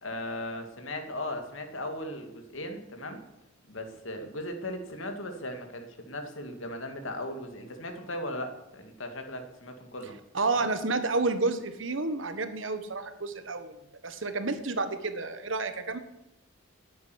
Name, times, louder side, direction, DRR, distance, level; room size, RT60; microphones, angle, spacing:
voice 1, 0.0-3.2 3.7-10.2 10.5-10.7, left 1 dB, 80° left, 6 dB, 2.3 m, -37 dB
voice 2, 10.3-13.8 14.0-16.0, right 3 dB, 70° right, 9 dB, 1.5 m, -30 dB
10.5 x 9.4 x 9.7 m, 0.90 s
head